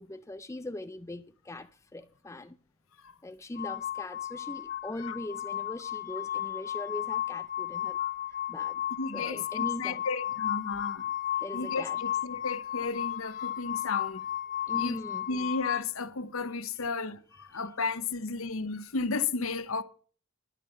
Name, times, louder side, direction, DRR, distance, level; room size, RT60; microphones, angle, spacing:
voice 1, 0.0-2.6 3.2-8.0 8.3-8.8 9.1-10.0 11.3-12.0 14.7-15.3 16.7-16.9 17.3-17.7, left 1 dB, 15° left, 0.5 m, -40 dB
sound 1, 3.6-15.8, left 11 dB, 40° left, 1.6 m, -34 dB
voice 2, 9.0-11.1 11.5-14.3 14.8-15.0 15.3-19.8, left 4 dB, 75° left, 1.0 m, -33 dB
11.0 x 8.3 x 6.7 m
head